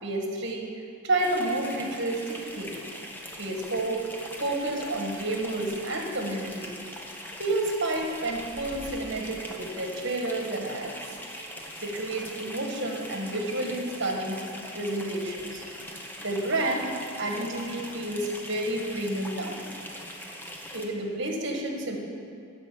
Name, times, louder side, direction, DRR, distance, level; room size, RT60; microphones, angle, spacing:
voice 1, 0.0-0.7 1.0-2.8 3.4-4.1 4.4-6.7 7.4-10.9 11.8-14.4 14.7-15.6 16.2-19.6 20.7-22.0, right 2 dB, 55° right, 1 dB, 1.6 m, -30 dB
sound 1, 1.2-20.9, equal, 10° left, 0.9 m, -41 dB
12.5 x 4.9 x 8.3 m, 2.5 s
head